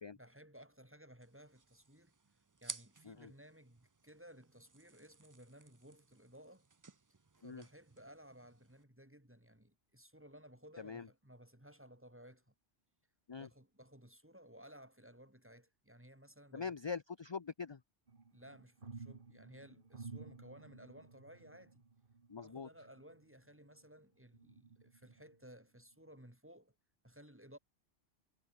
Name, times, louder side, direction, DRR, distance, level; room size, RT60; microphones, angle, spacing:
voice 1, 0.1-2.1 2.6-6.7 7.4-12.5 13.4-16.7 18.3-21.8 22.4-26.8 27.0-27.6, equal, 10° right, 3.7 m, -58 dB
sound 1, 1.2-8.8, right 4 dB, 25° right, 0.4 m, -55 dB
voice 2, 10.8-11.1 13.3-13.5 16.5-17.8 22.3-22.7, left 5 dB, 30° left, 0.5 m, -43 dB
sound 2, 18.1-23.8 24.3-25.5 25.9-26.1, right 4 dB, 45° right, 1.8 m, -54 dB
omnidirectional pair, 1.2 m